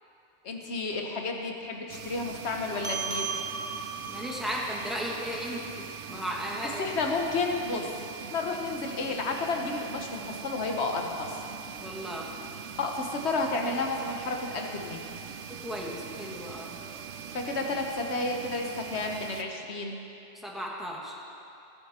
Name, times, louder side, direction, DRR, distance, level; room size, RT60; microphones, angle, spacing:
voice 1, 0.4-3.3 6.8-7.9 8.2-11.4 12.8-15.1 17.3-20.0, left 3 dB, 65° left, 2 dB, 1.4 m, -31 dB
sound 1, 1.9-19.4, right 7 dB, 80° right, 1.0 m, -42 dB
sound 2, 2.8-7.6, right 6 dB, 50° right, 0.9 m, -38 dB
voice 2, 4.1-6.9 11.8-12.3 15.5-16.8 20.3-21.1, equal, ahead, -3 dB, 1.7 m, -35 dB
21.5 x 7.9 x 4.4 m, 2.8 s
omnidirectional pair, 1.2 m